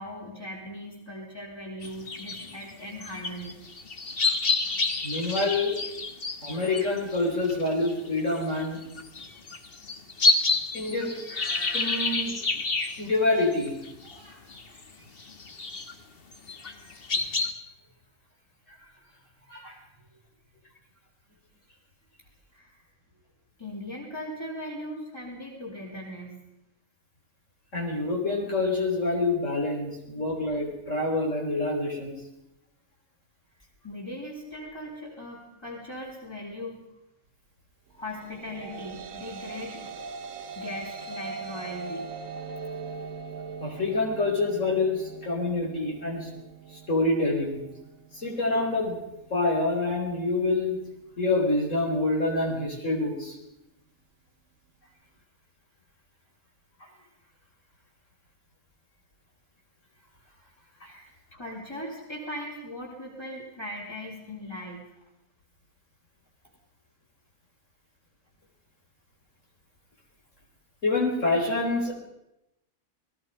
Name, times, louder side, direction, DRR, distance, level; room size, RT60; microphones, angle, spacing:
voice 1, 0.0-3.7 22.5-22.8 23.6-26.4 33.8-36.9 37.9-39.9 40.5-42.1 60.8-61.1 61.4-64.8, left 1 dB, 20° left, -4 dB, 4.2 m, -39 dB
sound 1, 1.8-14.2 14.5-14.8 15.2-15.9 16.3-17.5, left 3 dB, 40° left, 1.8 m, -29 dB
voice 2, 5.0-5.8 6.4-8.8 10.7-11.1 11.7-12.4 13.0-13.8 14.1-14.4 16.6-16.7 18.7-18.8 19.5-19.8 27.7-32.1 43.6-46.3 46.7-47.7 48.1-49.0 49.3-50.8 51.2-53.4 60.8-60.9 70.8-71.9, left 2 dB, 60° left, 0 dB, 4.6 m, -27 dB
sound 2, 38.3-46.9, right 5 dB, 65° right, 1.4 m, -40 dB
29.0 x 19.0 x 5.5 m, 0.88 s
omnidirectional pair, 1.5 m